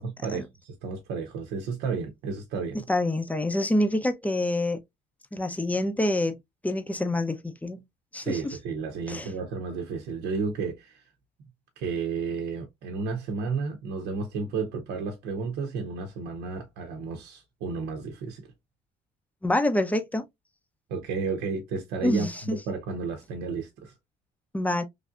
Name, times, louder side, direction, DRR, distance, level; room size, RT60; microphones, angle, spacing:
voice 1, 0.0-2.8 8.2-11.1 11.8-18.5 20.9-23.9, right 4 dB, 80° right, 0.7 m, -32 dB
voice 2, 2.9-4.8 5.3-6.4 6.6-7.8 8.1-8.6 9.1-9.3 19.4-20.2 22.0-22.6 24.5-24.8, left 1 dB, 10° left, 0.6 m, -26 dB
3.3 x 2.6 x 2.4 m
cardioid pair, 110°, 17 cm